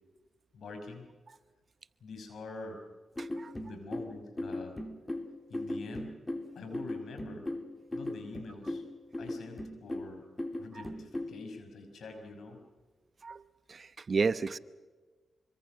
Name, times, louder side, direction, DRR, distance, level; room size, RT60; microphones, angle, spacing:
voice 1, 0.5-1.1 2.0-2.8 3.5-4.8 5.5-6.1 6.5-7.5 7.9-8.8 9.2-10.2 10.6-12.6, left 3 dB, 75° left, 6 dB, 5.8 m, -45 dB
sound 1, 3.2-11.4, left 1 dB, 20° left, 2.9 m, -38 dB
voice 2, 3.2-3.5 13.2-13.4 13.7-14.6, right 4 dB, 50° right, 15 dB, 0.9 m, -32 dB
26.0 x 24.5 x 6.3 m, 1.3 s
cardioid pair, 70°, 0 cm